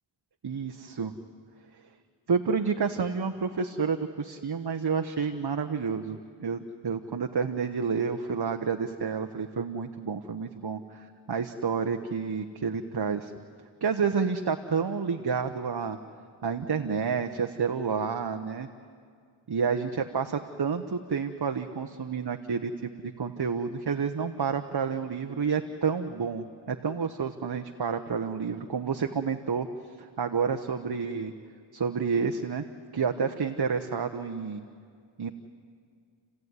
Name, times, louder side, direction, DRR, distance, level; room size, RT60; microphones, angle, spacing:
voice 1, 0.4-1.1 2.3-13.3 13.8-16.0 16.4-18.7 19.5-29.7 30.0-31.3 31.7-32.6 32.9-34.6 35.2-35.3, right 5 dB, 55° right, 6 dB, 1.0 m, -29 dB
30.0 x 15.5 x 9.6 m, 2.1 s
wide cardioid pair, 55°, 46 cm